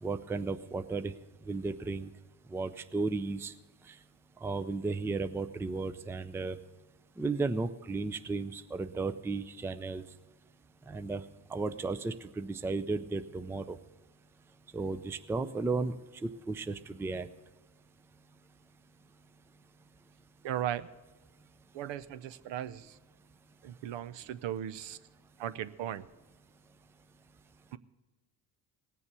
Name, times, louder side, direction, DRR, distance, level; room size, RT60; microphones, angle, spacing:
voice 1, 0.0-1.1 1.5-2.1 2.5-3.5 4.4-6.6 7.2-10.0 10.9-11.2 11.5-13.8 14.7-15.9 16.2-17.3, right 3 dB, 5° right, 12 dB, 0.4 m, -34 dB
voice 2, 20.4-20.9 21.7-23.0 23.6-25.0 25.4-26.0 27.7-27.8, right 11 dB, 60° right, 15 dB, 0.7 m, -37 dB
18.5 x 7.0 x 6.8 m, 1.2 s
supercardioid pair, 65°, 49 cm